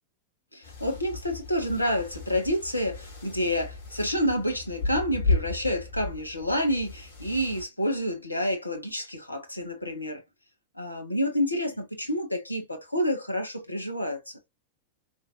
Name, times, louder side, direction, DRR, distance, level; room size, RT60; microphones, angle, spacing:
voice 1, 0.5-10.2 10.7-14.4, equal, 85° left, 1.3 m, -29 dB
sound 1, 0.6-7.6, left 3 dB, 60° left, 2.1 m, -34 dB
5.3 x 3.3 x 2.6 m
figure-of-eight pair, 90°, 0 cm